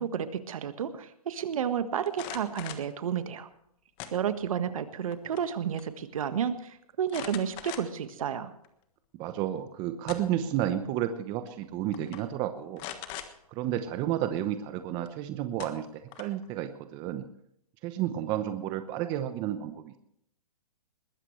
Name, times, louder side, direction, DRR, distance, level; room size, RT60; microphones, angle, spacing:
voice 1, 0.0-3.5 4.1-8.5, right 8 dB, 60° right, 10 dB, 1.5 m, -31 dB
sound 1, 2.1-2.9 4.0-4.6 5.0-5.5 5.8-5.9 7.1-8.1 8.6-8.7 9.7-10.5 11.5-11.6 11.9-12.2 12.8-13.3 15.0-15.1 15.6-16.4, left 11 dB, 25° left, 1.4 m, -41 dB
voice 2, 9.2-12.8 13.5-17.2 17.8-19.9, right 11 dB, 25° right, 10 dB, 0.8 m, -31 dB
21.0 x 15.0 x 3.2 m, 0.72 s
hypercardioid pair, 145°, 19 cm